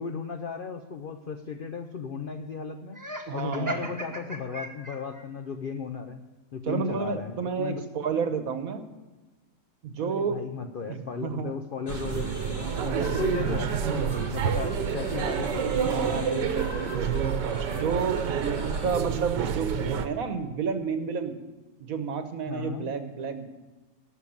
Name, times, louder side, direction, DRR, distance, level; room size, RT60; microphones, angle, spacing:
voice 1, 0.0-3.0 3.3-6.2 6.5-7.8 10.0-12.5 12.8-16.4 22.5-22.9, left 6 dB, 80° left, 6 dB, 0.4 m, -35 dB
Laughter, 2.9-5.2, right 2 dB, 15° right, 0.9 m, -37 dB
voice 2, 3.3-3.9 6.7-8.8 9.8-10.4 10.9-11.5 13.0-13.2 15.9-17.1 17.7-21.4 21.8-23.4, right 6 dB, 60° right, 9 dB, 1.3 m, -31 dB
sound 1, 11.9-19.0, left 1 dB, 25° left, 0.5 m, -42 dB
sound 2, 11.9-20.1, right 7 dB, 80° right, 1.5 m, -28 dB
12.0 x 6.5 x 8.7 m, 1.2 s
omnidirectional pair, 1.8 m